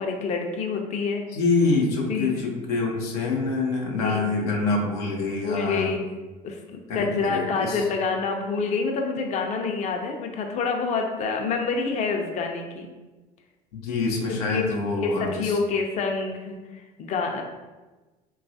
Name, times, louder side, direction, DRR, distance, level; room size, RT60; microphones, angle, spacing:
voice 1, 0.0-1.2 2.1-2.5 4.0-4.3 5.4-6.0 6.4-12.9 14.5-14.7 15.0-17.4, left 4 dB, 40° left, 3 dB, 0.4 m, -27 dB
voice 2, 1.3-5.9 6.9-7.8 13.7-15.6, left 3 dB, 85° left, -1 dB, 0.6 m, -26 dB
3.1 x 2.3 x 2.6 m, 1.2 s
hypercardioid pair, 70°, 19 cm